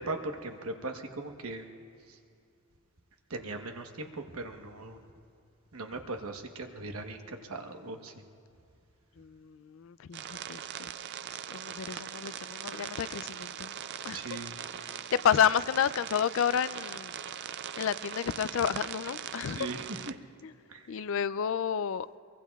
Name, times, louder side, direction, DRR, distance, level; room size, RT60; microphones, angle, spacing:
voice 1, 0.0-1.7 3.3-5.0 5.7-8.1 14.1-14.6 19.6-20.2 20.7-20.8, right 2 dB, 75° right, 4 dB, 1.1 m, -39 dB
voice 2, 9.2-10.9 11.5-13.7 14.0-14.3 14.9-15.0 15.2-17.1 17.8-19.7 20.4-20.5 20.9-22.1, left 8 dB, 60° left, 16 dB, 0.3 m, -30 dB
sound 1, 10.1-20.1, right 9 dB, 50° right, 0.4 m, -40 dB
23.5 x 23.0 x 2.3 m, 2.5 s
head